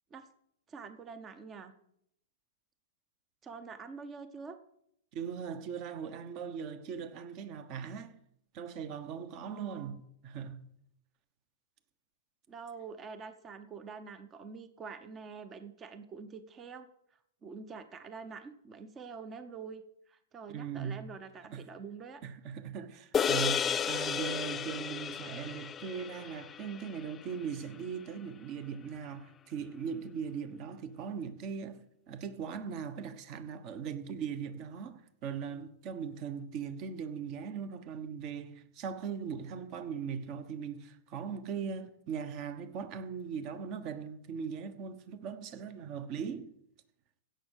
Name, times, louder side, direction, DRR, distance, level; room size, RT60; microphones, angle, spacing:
voice 1, 0.7-1.7 3.4-4.6 9.4-10.0 12.5-16.9 17.4-22.2, right 5 dB, 20° right, 0.8 m, -46 dB
voice 2, 5.1-8.1 8.5-10.6 20.5-21.0 21.5-21.6 22.2-31.8 32.1-46.5, right 6 dB, 40° right, 1.2 m, -39 dB
sound 1, 23.1-27.7, left 8 dB, 20° left, 0.4 m, -33 dB
16.0 x 6.4 x 6.5 m
hypercardioid pair, 145°, 0 cm